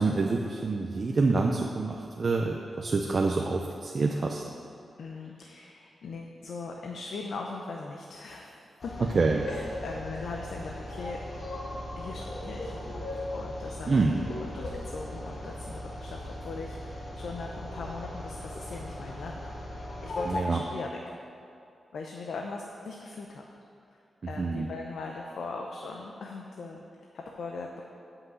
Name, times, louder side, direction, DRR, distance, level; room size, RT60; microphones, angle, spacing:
voice 1, 0.0-4.4 9.1-9.4 13.9-14.2 20.3-20.6 24.4-24.7, right 3 dB, 40° right, 1 dB, 0.5 m, -26 dB
voice 2, 5.0-9.1 9.5-12.7 13.3-14.0 14.4-19.4 20.0-20.9 21.9-23.4 23.9-24.0 24.3-27.8, left 3 dB, 90° left, 1 dB, 0.7 m, -40 dB
sound 1, 8.8-20.4, left 1 dB, 45° left, 1.3 m, -38 dB
8.2 x 5.8 x 7.7 m, 2.5 s
wide cardioid pair, 155°, 0 cm